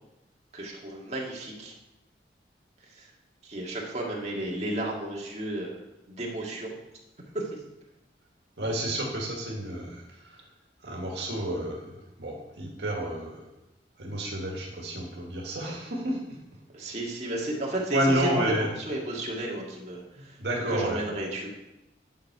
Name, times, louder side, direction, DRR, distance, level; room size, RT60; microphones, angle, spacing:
voice 1, 0.5-1.7 2.9-3.1 3.4-5.8 6.1-6.8 7.3-7.6 16.7-20.4 20.7-21.5, right 1 dB, 40° right, -2 dB, 1.9 m, -33 dB
voice 2, 8.6-10.0 10.8-13.4 14.0-16.2 17.3-17.5 17.9-18.7 20.4-21.0, right 1 dB, 75° right, -1 dB, 1.9 m, -30 dB
10.5 x 6.4 x 4.7 m, 0.94 s
head